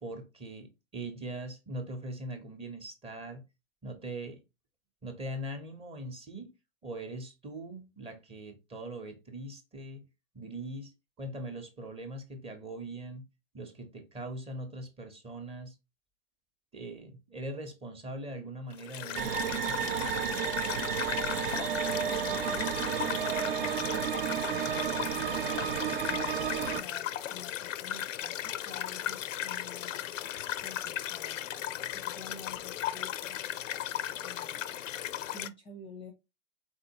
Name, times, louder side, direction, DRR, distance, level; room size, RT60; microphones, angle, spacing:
voice 1, 0.0-3.4 3.8-4.4 5.0-6.5 6.8-10.0 10.3-10.9 11.2-13.2 13.5-15.8 16.7-20.4, right 1 dB, 15° right, 0.8 m, -41 dB
sound 1, 18.7-35.5, left 11 dB, 80° left, 0.6 m, -36 dB
sound 2, 19.1-26.8, right 9 dB, 50° right, 0.6 m, -32 dB
voice 2, 22.0-25.1 26.0-29.9 30.6-31.4 31.9-33.4 34.2-35.1 35.3-36.1, left 3 dB, 15° left, 0.6 m, -49 dB
4.2 x 3.8 x 2.8 m
hypercardioid pair, 130°, 38 cm